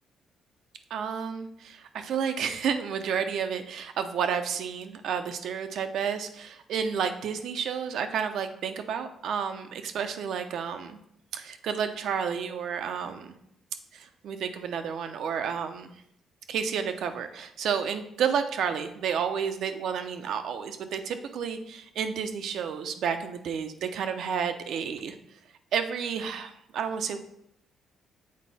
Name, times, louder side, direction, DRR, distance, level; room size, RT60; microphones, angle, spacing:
voice 1, 0.9-11.0 11.3-13.3 13.9-15.9 16.5-25.2 25.7-27.2, right 7 dB, 75° right, 8 dB, 0.6 m, -31 dB
7.4 x 4.1 x 4.1 m, 0.77 s
cardioid pair, 90°, 0 cm